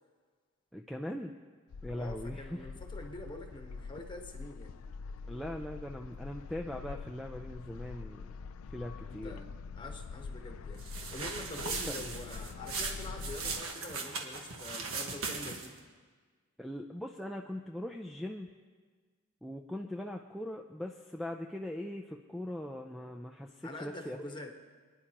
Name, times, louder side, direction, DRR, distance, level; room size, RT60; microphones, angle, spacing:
voice 1, 0.7-1.3 1.8-2.7 5.3-8.3 8.7-9.4 16.6-18.5 19.4-24.3, left 1 dB, ahead, 0 dB, 0.4 m, -40 dB
sound 1, 1.7-13.6, left 5 dB, 85° left, 0.4 m, -45 dB
voice 2, 1.9-4.7 9.1-9.4 9.8-15.8 23.6-24.5, left 2 dB, 20° left, 3 dB, 1.2 m, -45 dB
sound 2, 10.8-15.8, right 4 dB, 90° right, 1.5 m, -38 dB
28.0 x 10.0 x 2.9 m, 1.5 s
head